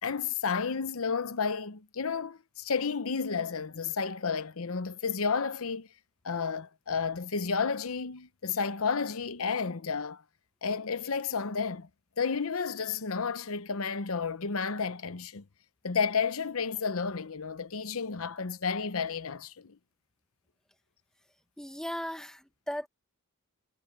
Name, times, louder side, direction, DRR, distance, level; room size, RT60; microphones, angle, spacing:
voice 1, 0.0-5.9 6.2-10.2 10.6-11.9 12.2-15.4 15.8-19.8, left 5 dB, 70° left, 0.9 m, -31 dB
voice 2, 21.6-22.9, equal, 5° left, 1.2 m, -37 dB
head